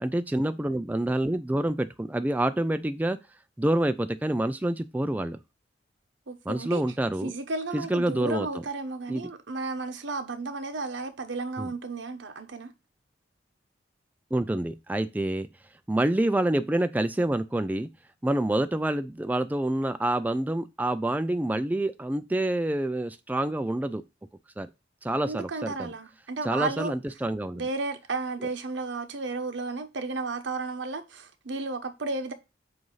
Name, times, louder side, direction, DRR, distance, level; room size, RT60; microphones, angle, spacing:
voice 1, 0.0-3.2 3.6-5.4 6.5-7.3 7.7-8.5 9.1-9.3 11.6-11.7 14.3-15.5 15.9-17.9 18.2-24.0 24.6-24.7 25.0-25.9 26.4-27.6, right 1 dB, 10° right, 0.3 m, -27 dB
voice 2, 6.3-6.8 7.2-12.7 25.2-26.9 27.5-32.3, right 3 dB, 90° right, 1.0 m, -33 dB
7.7 x 2.7 x 5.5 m
head